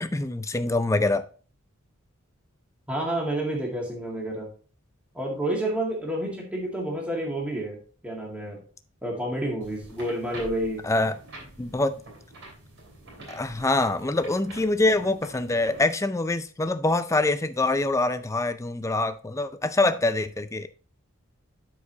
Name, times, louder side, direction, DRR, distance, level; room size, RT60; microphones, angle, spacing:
voice 1, 0.0-1.2 10.8-11.2 11.6-11.9 13.3-20.7, left 2 dB, 15° left, 0.4 m, -25 dB
voice 2, 2.9-4.5 5.1-7.8 8.0-8.6 9.0-10.8, right 1 dB, 5° right, 1.8 m, -29 dB
sound 1, 9.6-15.8, right 1 dB, 55° right, 3.2 m, -46 dB
12.5 x 4.8 x 2.8 m
head